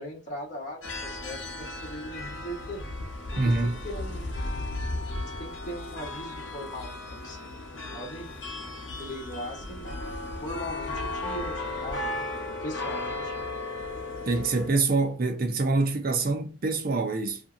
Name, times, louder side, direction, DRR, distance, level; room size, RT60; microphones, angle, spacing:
voice 1, 0.0-2.9 3.4-4.3 5.2-8.3 9.0-10.0 10.4-12.1 12.6-13.5, equal, 40° left, 1.1 m, -39 dB
sound 1, 0.8-14.7, left 2 dB, 85° left, 0.7 m, -35 dB
voice 2, 3.3-3.7 14.2-17.4, right 3 dB, 50° right, 0.6 m, -25 dB
2.7 x 2.6 x 2.4 m
head